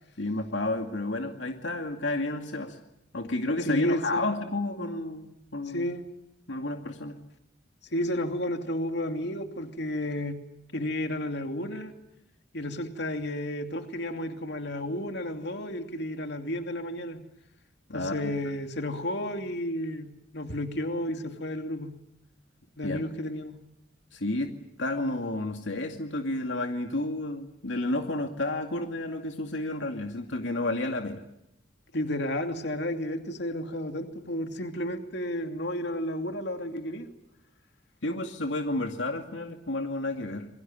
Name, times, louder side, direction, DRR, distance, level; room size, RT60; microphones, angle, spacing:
voice 1, 0.2-2.8 3.1-5.9 6.5-7.2 17.9-18.3 22.8-23.0 24.1-24.5 24.8-31.2 38.0-40.5, left 2 dB, 80° left, 4 dB, 2.3 m, -31 dB
voice 2, 3.7-4.3 5.7-6.0 7.9-10.4 10.7-11.9 12.5-17.2 17.9-21.9 22.8-23.6 31.9-37.1, left 1 dB, 65° left, 6 dB, 2.7 m, -32 dB
27.5 x 22.5 x 8.9 m, 0.84 s
head